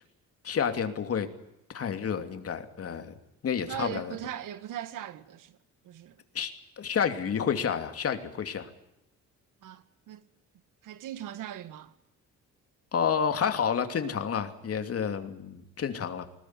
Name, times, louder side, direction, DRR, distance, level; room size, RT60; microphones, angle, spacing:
voice 1, 0.4-1.3 1.7-3.1 3.4-4.1 6.3-8.7 12.9-16.3, left 7 dB, 50° left, 2.8 m, -30 dB
voice 2, 3.7-5.6 5.8-6.2 9.6-10.3 10.8-11.9, right 11 dB, 85° right, 1.8 m, -39 dB
20.5 x 20.5 x 9.6 m
cardioid pair, 120°, 31 cm